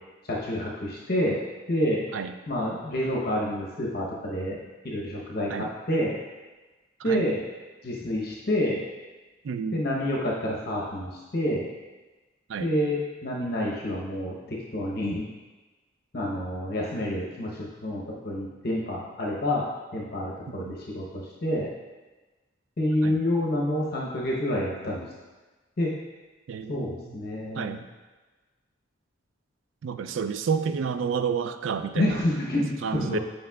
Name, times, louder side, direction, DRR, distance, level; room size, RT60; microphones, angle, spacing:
voice 1, 0.3-1.4 1.7-2.0 2.5-4.6 4.8-6.2 7.0-7.4 7.8-8.8 9.7-11.7 12.6-15.3 16.1-19.7 19.9-21.7 22.8-25.1 25.8-25.9 26.7-27.8 31.9-33.2, left 1 dB, 55° left, -3 dB, 0.9 m, -28 dB
voice 2, 9.4-9.8 12.5-12.7 20.5-20.7 23.0-23.2 26.5-27.0 27.5-27.8 29.8-32.2 32.8-33.2, right 6 dB, 90° right, 10 dB, 0.4 m, -30 dB
8.6 x 5.2 x 2.3 m, 1.2 s
head